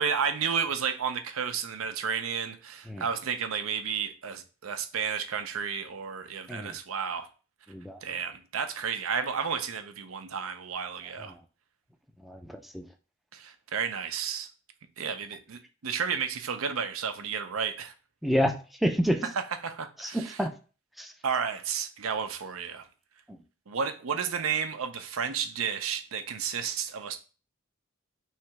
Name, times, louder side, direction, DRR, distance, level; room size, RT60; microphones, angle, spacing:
voice 1, 0.0-7.3 8.0-11.3 13.3-14.5 15.0-17.9 19.6-20.4 21.2-22.9 23.7-27.2, right 6 dB, 90° right, 0.6 m, -32 dB
voice 2, 7.7-8.0 11.3-11.4 12.2-12.8 18.2-18.5 18.8-19.3 20.0-20.5 21.0-21.1 23.3-23.4, equal, ahead, 0.4 m, -29 dB
3.2 x 2.9 x 4.5 m
head